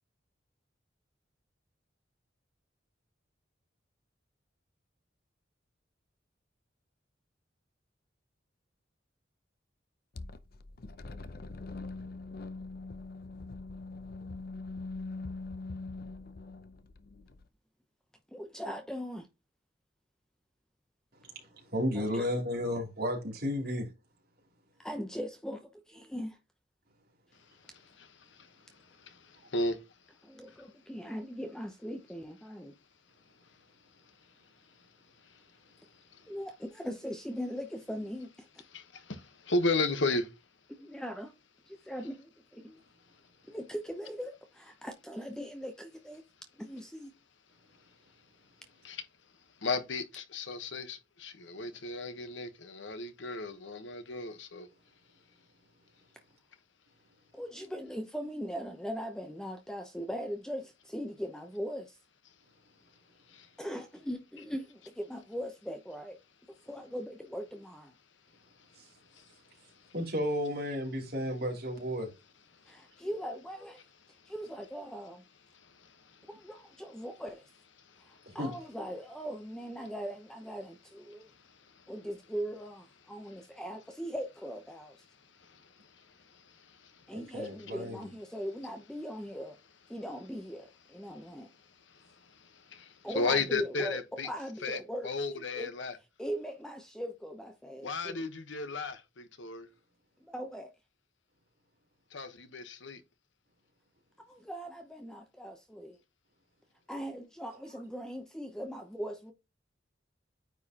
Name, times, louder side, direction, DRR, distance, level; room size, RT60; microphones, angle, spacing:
sound 1, 10.2-17.5, left 3 dB, 50° left, 0.6 m, -42 dB
voice 1, 18.3-19.3 21.9-22.3 23.7-23.8 24.8-26.4 30.2-32.7 36.3-38.6 40.7-41.3 41.7-42.8 43.5-46.2 46.6-47.1 57.3-62.0 63.6-66.2 66.7-67.9 72.7-73.8 74.3-75.2 76.3-77.4 78.0-81.3 81.9-85.0 87.1-89.6 89.9-91.5 93.0-95.7 96.2-98.2 100.2-100.7 104.2-106.0 106.9-109.3, equal, 5° left, 0.7 m, -40 dB
voice 2, 21.7-23.9 68.8-68.9 69.9-72.1 78.4-78.5 87.1-88.0, equal, 55° right, 3.0 m, -33 dB
voice 3, 39.5-40.3 48.8-49.0 49.6-54.7 93.1-94.3 94.6-96.0 97.8-99.7 102.1-103.0, left 3 dB, 75° left, 1.1 m, -33 dB
9.4 x 4.7 x 2.9 m
head